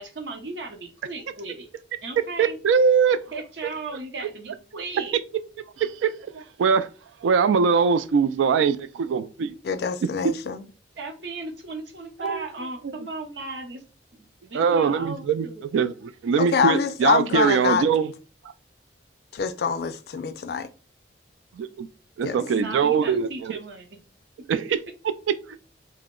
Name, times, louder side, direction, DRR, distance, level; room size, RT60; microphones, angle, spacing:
voice 1, 0.0-1.7 2.0-2.6 3.3-5.2 11.0-13.8 14.1-15.6 22.5-24.0 24.7-24.8, right 3 dB, 70° right, 0.7 m, -36 dB
voice 2, 2.4-3.2 5.8-6.9 7.2-9.5 12.2-12.4 14.5-15.5 15.7-18.1 21.6-21.9 22.2-23.6 24.5-24.6 25.5-25.6, right 6 dB, 90° right, 0.3 m, -22 dB
voice 3, 9.6-10.6 16.4-17.9 19.3-20.7 22.2-22.4, left 6 dB, 55° left, 0.3 m, -25 dB
2.8 x 2.0 x 3.6 m
head